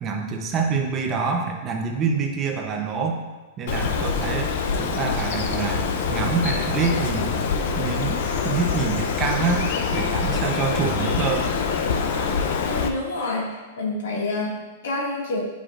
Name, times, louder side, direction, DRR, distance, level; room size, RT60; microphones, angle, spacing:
voice 1, 0.0-3.2 3.6-5.8 6.1-7.4 7.8-9.7 9.9-11.5, right 5 dB, 20° right, 2 dB, 0.7 m, -26 dB
Bird, 3.7-12.9, left 5 dB, 55° left, 0.6 m, -25 dB
voice 2, 12.6-15.5, left 2 dB, 85° left, -2 dB, 1.9 m, -28 dB
9.1 x 5.1 x 2.5 m, 1.2 s
supercardioid pair, 170°, 0 cm